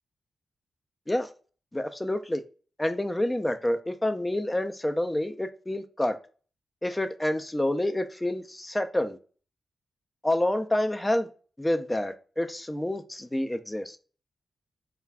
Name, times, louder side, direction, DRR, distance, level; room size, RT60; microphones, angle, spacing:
voice 1, 1.7-2.4 2.8-6.2 6.8-9.2 10.2-11.3 11.6-14.0, left 1 dB, 15° left, 0.3 m, -28 dB
2.3 x 2.2 x 3.3 m
cardioid pair, 55°, 0 cm